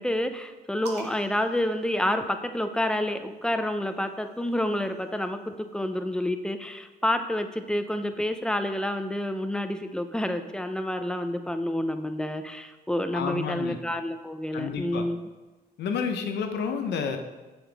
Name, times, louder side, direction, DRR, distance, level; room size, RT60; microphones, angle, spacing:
voice 1, 0.0-15.2, left 1 dB, 5° left, 7 dB, 0.6 m, -29 dB
sound 1, 0.9-2.7 3.8-5.4, right 4 dB, 70° right, 1.2 m, -47 dB
voice 2, 13.1-13.8 14.5-15.0 15.8-17.2, left 6 dB, 80° left, 5 dB, 0.9 m, -30 dB
7.3 x 7.1 x 3.5 m, 1.2 s
cardioid pair, 100°, 17 cm